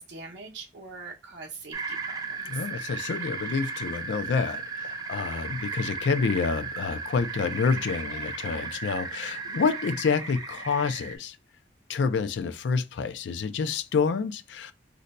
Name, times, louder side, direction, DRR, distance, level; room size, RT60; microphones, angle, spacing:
voice 1, 0.0-2.7 9.4-9.7, right 4 dB, 75° right, 0.6 m, -43 dB
sound 1, 1.7-11.1, right 4 dB, 20° right, 0.4 m, -35 dB
voice 2, 2.5-11.4 11.9-14.7, left 5 dB, 85° left, 0.4 m, -28 dB
2.6 x 2.2 x 3.9 m
head